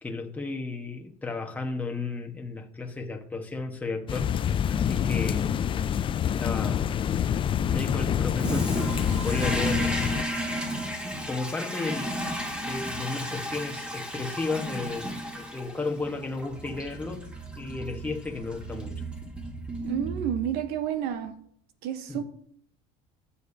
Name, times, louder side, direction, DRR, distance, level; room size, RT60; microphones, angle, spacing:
voice 1, 0.0-5.5 6.2-6.8 7.6-9.9 11.3-12.2 12.7-17.3 17.5-19.0 22.1-22.2, left 3 dB, 10° left, 1.3 m, -34 dB
sound 1, 4.1-10.2, left 9 dB, 35° left, 0.4 m, -27 dB
Toilet flush, 8.4-20.7, equal, 5° right, 1.9 m, -33 dB
voice 2, 19.8-21.4 21.8-22.2, right 9 dB, 75° right, 1.1 m, -30 dB
14.5 x 6.9 x 2.8 m
supercardioid pair, 100°, 16 cm